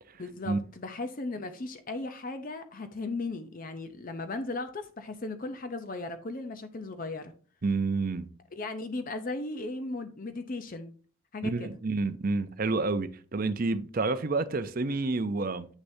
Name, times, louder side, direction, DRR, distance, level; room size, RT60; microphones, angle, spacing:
voice 1, 0.2-7.3 8.5-10.9 11.3-11.8, left 2 dB, 40° left, 0.6 m, -36 dB
voice 2, 7.6-8.3 11.4-15.7, right 3 dB, 40° right, 0.5 m, -29 dB
8.2 x 6.6 x 2.7 m
head